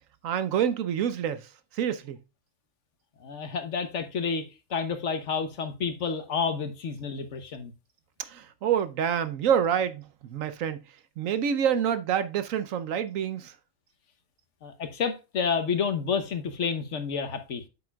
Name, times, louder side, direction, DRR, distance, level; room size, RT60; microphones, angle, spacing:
voice 1, 0.2-1.5 1.7-2.2 8.2-10.0 10.3-10.8 11.2-13.5, right 8 dB, 70° right, 1.0 m, -27 dB
voice 2, 3.2-7.7 14.6-17.6, left 6 dB, 60° left, 1.2 m, -30 dB
8.3 x 7.0 x 2.3 m
omnidirectional pair, 1.5 m